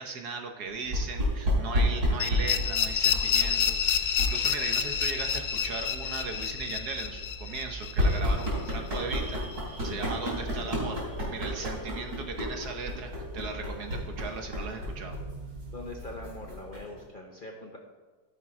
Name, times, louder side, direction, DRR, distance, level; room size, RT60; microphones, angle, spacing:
voice 1, 0.0-15.2, right 4 dB, 65° right, 4 dB, 1.4 m, -38 dB
sound 1, 0.9-17.0, equal, 85° right, 3.9 m, -32 dB
sound 2, 2.2-9.0, left 8 dB, 70° left, 1.2 m, -29 dB
sound 3, 9.1-13.5, right 2 dB, 15° right, 1.7 m, -50 dB
voice 2, 15.7-17.8, left 2 dB, 40° left, 1 dB, 0.8 m, -42 dB
13.5 x 5.9 x 4.8 m, 1.3 s
omnidirectional pair, 1.9 m